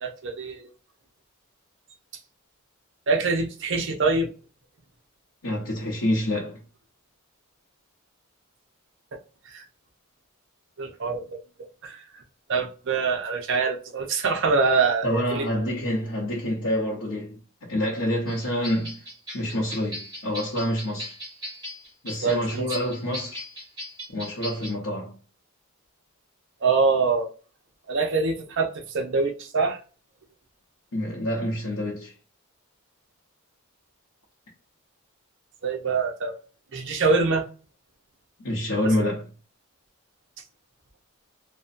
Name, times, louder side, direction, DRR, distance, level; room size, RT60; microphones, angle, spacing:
voice 1, 0.0-0.7 3.1-4.3 9.5-9.6 10.8-11.4 11.8-12.0 12.5-15.5 22.2-22.6 26.6-27.3 27.9-29.8 35.6-36.3 36.7-37.4 39.0-39.1, right 4 dB, 55° right, 0.5 m, -24 dB
voice 2, 5.4-6.6 15.0-19.0 19.3-21.1 22.0-23.4 24.1-25.2 30.9-32.1 38.4-39.2, left 1 dB, 70° left, 0.8 m, -27 dB
sound 1, 18.3-24.7, equal, 20° right, 1.3 m, -38 dB
2.6 x 2.1 x 2.4 m
head